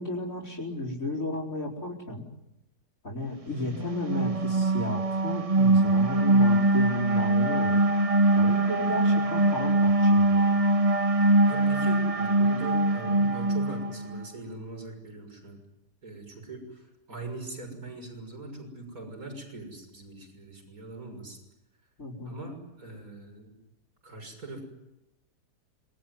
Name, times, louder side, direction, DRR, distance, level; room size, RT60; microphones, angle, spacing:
voice 1, 0.0-2.2 3.0-7.8 8.4-10.6 22.0-22.3, left 1 dB, 55° left, -7 dB, 4.8 m, -34 dB
sound 1, 3.7-14.2, right 2 dB, 25° right, 0.8 m, -23 dB
voice 2, 11.5-15.6 16.0-21.4 22.2-23.5 24.0-24.6, right 2 dB, 60° right, 3 dB, 6.9 m, -41 dB
27.0 x 21.5 x 9.5 m, 0.92 s
omnidirectional pair, 1.7 m